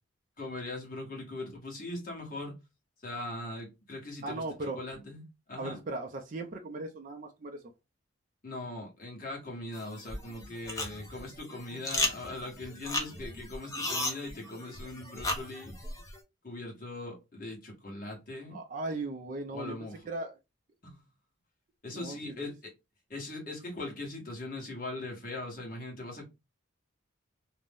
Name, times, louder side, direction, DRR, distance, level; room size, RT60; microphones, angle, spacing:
voice 1, 0.4-2.6 3.0-5.2 5.5-5.8 8.4-15.7 16.4-18.6 19.5-20.1 20.8-21.1 21.8-22.7 23.1-26.3, left 2 dB, 40° left, 1.1 m, -40 dB
voice 2, 4.2-4.8 5.6-7.6 18.5-19.8 20.0-20.4 21.9-22.3, right 2 dB, 40° right, 0.4 m, -37 dB
sound 1, 9.7-16.2, left 2 dB, 15° left, 0.5 m, -36 dB
2.5 x 2.0 x 3.3 m
head